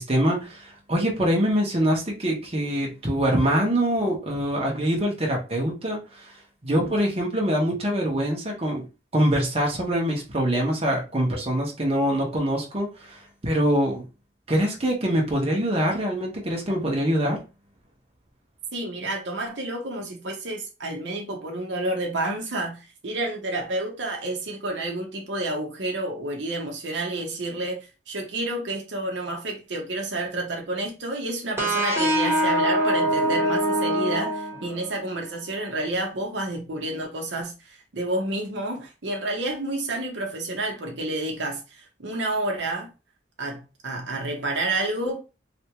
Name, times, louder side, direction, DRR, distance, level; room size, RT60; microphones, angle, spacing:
voice 1, 0.0-6.3 6.6-8.8 9.1-14.0 14.5-17.4, equal, 30° right, 0.9 m, -24 dB
voice 2, 18.7-27.8 28.1-42.9 43.4-45.2, right 2 dB, 70° right, 0.8 m, -30 dB
sound 1, 31.6-35.1, right 1 dB, 15° right, 1.1 m, -23 dB
3.3 x 2.5 x 2.9 m
head